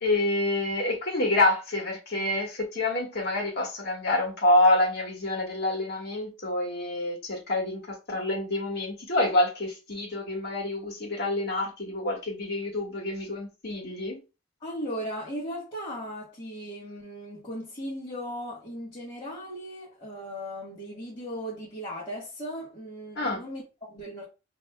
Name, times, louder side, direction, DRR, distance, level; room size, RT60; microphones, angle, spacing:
voice 1, 0.0-14.2 23.1-23.4, left 1 dB, 55° left, 1.4 m, -27 dB
voice 2, 14.6-24.3, equal, 25° left, 1.5 m, -37 dB
5.1 x 2.8 x 2.3 m
head